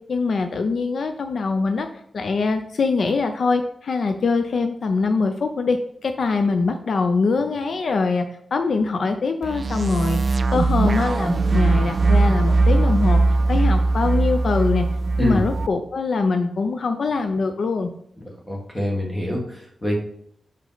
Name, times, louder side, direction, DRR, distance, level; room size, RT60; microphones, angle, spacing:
voice 1, 0.1-1.9 2.1-8.3 8.5-13.2 13.5-14.9 15.2-17.9, left 4 dB, 60° left, 7 dB, 0.4 m, -23 dB
sound 1, 9.4-15.7, right 3 dB, 40° right, 0.3 m, -20 dB
voice 2, 15.2-15.5 18.2-20.0, equal, 10° left, -2 dB, 1.6 m, -25 dB
5.5 x 4.9 x 3.9 m, 0.69 s
wide cardioid pair, 165°, 0 cm